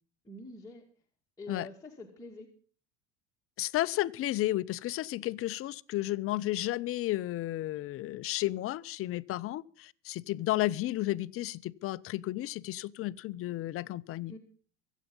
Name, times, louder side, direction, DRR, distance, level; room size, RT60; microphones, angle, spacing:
voice 1, 0.2-0.8 1.4-2.5 14.3-14.4, left 2 dB, 10° left, 2.2 m, -45 dB
voice 2, 3.6-14.3, left 16 dB, 40° left, 0.6 m, -33 dB
23.5 x 8.3 x 5.4 m
hypercardioid pair, 80°, 35 cm